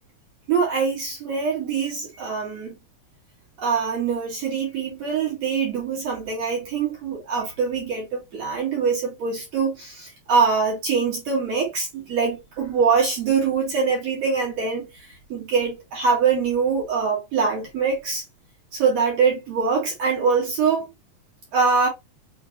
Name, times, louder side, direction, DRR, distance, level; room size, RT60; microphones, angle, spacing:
voice 1, 0.5-2.8 3.6-18.2 18.7-20.9 21.5-21.9, right 5 dB, 55° right, 2.1 m, -23 dB
6.6 x 2.5 x 2.8 m
omnidirectional pair, 4.8 m